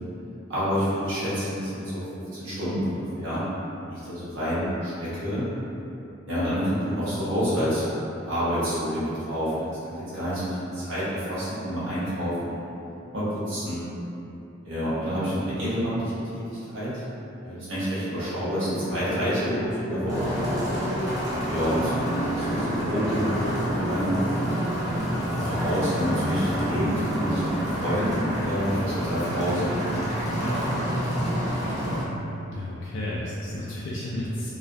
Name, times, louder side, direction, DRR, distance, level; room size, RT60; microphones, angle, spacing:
voice 1, 0.5-2.0 2.3-3.4 3.9-5.4 6.3-7.9 8.2-12.6 13.1-13.9 14.6-17.0 17.4-20.4 21.5-21.9 22.2-24.2 25.1-29.8 30.4-30.6, equal, 70° right, -12 dB, 0.9 m, -28 dB
Satan sings a lullaby, 18.5-24.0, equal, 45° left, 0.7 m, -34 dB
sound 1, 20.1-32.0, equal, 20° right, 0.5 m, -28 dB
voice 2, 32.5-34.5, left 1 dB, 65° left, -7 dB, 0.3 m, -32 dB
2.3 x 2.2 x 2.6 m, 2.9 s
head